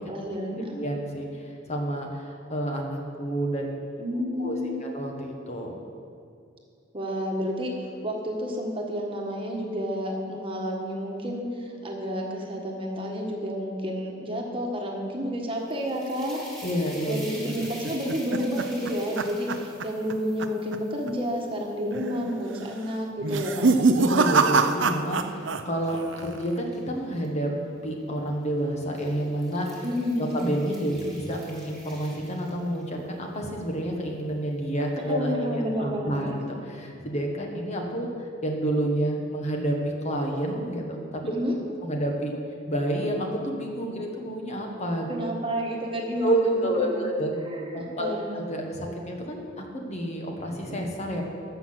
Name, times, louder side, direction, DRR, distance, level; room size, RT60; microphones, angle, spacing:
voice 1, 0.1-0.8 4.0-4.9 6.9-16.6 17.1-23.7 29.8-30.4 35.0-36.4 41.3-41.6 45.1-47.0 47.4-48.3, equal, 30° right, 0 dB, 1.5 m, -30 dB
voice 2, 0.7-3.8 4.4-5.8 16.6-17.5 24.0-27.5 27.8-29.8 30.2-38.1 38.4-39.8 40.0-41.2 41.8-42.3 42.7-45.1 46.2-47.4 47.7-51.2, right 1 dB, 35° left, 1 dB, 1.4 m, -29 dB
sound 1, 15.5-22.7 23.3-27.3 28.2-28.4 28.8-33.0, right 1 dB, ahead, 2.6 m, -47 dB
sound 2, 17.6-20.1 20.4-20.8 21.1-21.2 21.9-22.3 23.2-25.6 25.9-26.5, right 4 dB, 70° right, 0.6 m, -24 dB
13.0 x 5.9 x 7.7 m, 2.3 s
head